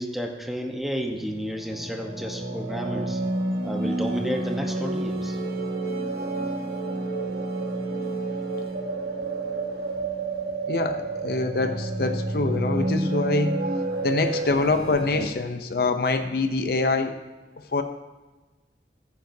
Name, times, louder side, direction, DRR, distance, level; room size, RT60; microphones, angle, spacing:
voice 1, 0.0-3.2 3.6-5.4, equal, ahead, 1 dB, 0.9 m, -31 dB
sound 1, 1.0-15.3, right 2 dB, 65° right, 1.3 m, -29 dB
voice 2, 10.7-13.6 14.0-17.2 17.7-17.8, left 3 dB, 55° left, 8 dB, 0.5 m, -25 dB
15.0 x 9.4 x 2.7 m, 1.2 s
head